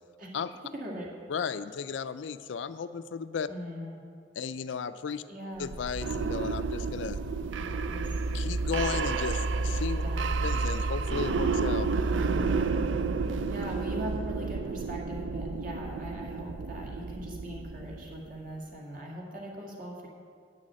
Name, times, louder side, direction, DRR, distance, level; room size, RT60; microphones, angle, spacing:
voice 1, 0.7-1.1 3.5-4.0 5.3-5.7 7.6-8.1 10.0-10.3 12.3-12.8 13.2-20.1, equal, 50° right, -2 dB, 1.9 m, -40 dB
voice 2, 1.3-3.5 4.4-5.2 5.6-7.2 8.3-10.0 10.4-11.9, left 6 dB, 80° left, 13 dB, 0.4 m, -34 dB
sound 1, 5.6-18.4, right 4 dB, 85° right, 0.4 m, -30 dB
8.9 x 6.4 x 7.4 m, 2.3 s
head